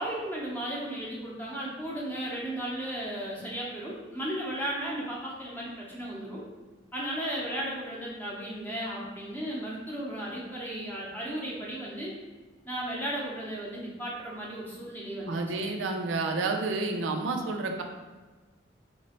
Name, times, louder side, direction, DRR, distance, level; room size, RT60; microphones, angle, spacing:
voice 1, 0.0-6.4 6.9-12.1 12.6-15.7, right 1 dB, 10° left, -5 dB, 0.7 m, -35 dB
voice 2, 15.3-17.8, right 3 dB, 80° right, 3 dB, 0.4 m, -30 dB
4.1 x 2.9 x 2.9 m, 1.3 s
head